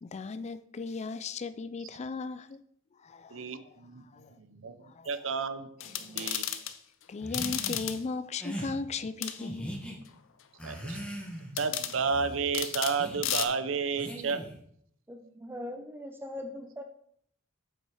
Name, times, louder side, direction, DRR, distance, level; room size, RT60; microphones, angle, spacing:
voice 1, 0.0-2.6 3.0-3.3 4.1-4.3 5.0-5.1 6.1-6.4 7.1-9.7, left 4 dB, 35° left, 13 dB, 0.4 m, -37 dB
voice 2, 3.3-4.0 4.4-6.5 10.6-14.4, right 5 dB, 75° right, 11 dB, 0.7 m, -32 dB
sound 1, 5.8-6.7 7.3-8.0 9.2-9.4 11.6-12.0 12.5-13.0 13.2-13.4, left 11 dB, 70° left, 0.7 m, -33 dB
sound 2, 7.2-7.8 8.4-8.7 9.4-10.0 10.6-11.5 11.9-12.4 13.0-13.2 14.0-14.6, equal, 5° left, 1.4 m, -40 dB
voice 3, 15.1-16.8, left 1 dB, 10° right, 5 dB, 0.7 m, -40 dB
7.3 x 5.7 x 4.9 m, 0.65 s
head